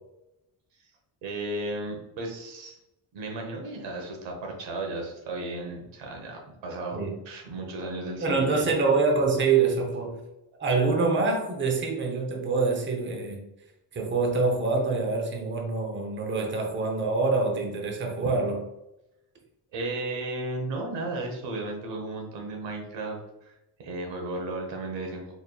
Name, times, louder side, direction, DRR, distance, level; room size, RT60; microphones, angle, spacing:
voice 1, 1.2-2.7 3.1-8.7 19.7-23.5 23.8-25.3, right 2 dB, 85° right, 2 dB, 1.2 m, -34 dB
voice 2, 8.2-10.2 10.6-13.4 13.9-18.6, right 4 dB, 25° right, 2 dB, 0.8 m, -25 dB
4.2 x 3.5 x 2.3 m, 0.92 s
cardioid pair, 115°, 43 cm